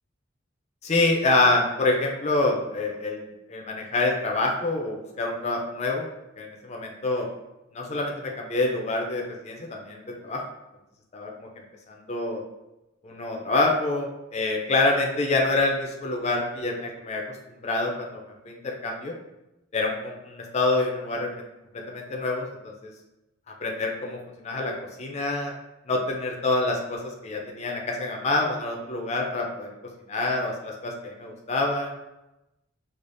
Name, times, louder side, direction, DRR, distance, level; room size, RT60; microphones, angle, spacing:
voice 1, 0.8-3.2 3.5-6.1 6.4-7.3 7.7-10.4 11.1-11.5 11.9-12.4 13.0-17.2 17.5-18.1 18.4-19.1 19.7-21.3 21.9-22.5 23.6-24.2 24.4-24.7 25.0-25.5 25.9-29.7 30.1-31.9, left 2 dB, 35° left, 0 dB, 0.5 m, -26 dB
4.8 x 2.4 x 2.5 m, 0.96 s
head